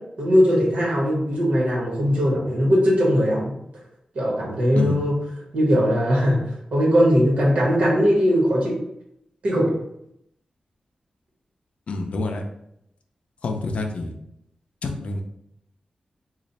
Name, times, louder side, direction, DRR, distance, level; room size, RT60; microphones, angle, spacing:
voice 1, 0.2-3.5 4.1-5.1 5.5-6.4 6.7-8.7 9.4-9.7, equal, 75° right, -4 dB, 1.4 m, -19 dB
voice 2, 11.9-12.4 13.4-14.1 14.8-15.2, left 3 dB, 65° left, 3 dB, 0.5 m, -27 dB
3.1 x 2.4 x 4.0 m, 0.77 s
wide cardioid pair, 175°, 2 cm